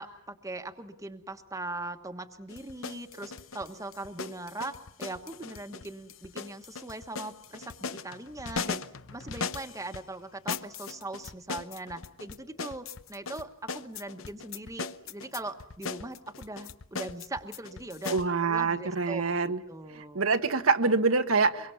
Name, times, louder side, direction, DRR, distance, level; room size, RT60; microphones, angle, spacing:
voice 1, 0.0-20.2, right 2 dB, 15° right, 7 dB, 1.3 m, -40 dB
sound 1, 2.5-10.0 10.5-18.3, left 5 dB, 70° left, 0.9 m, -39 dB
voice 2, 18.1-19.6 20.1-21.7, right 4 dB, 80° right, 7 dB, 1.3 m, -25 dB
24.0 x 23.5 x 7.1 m, 0.68 s
head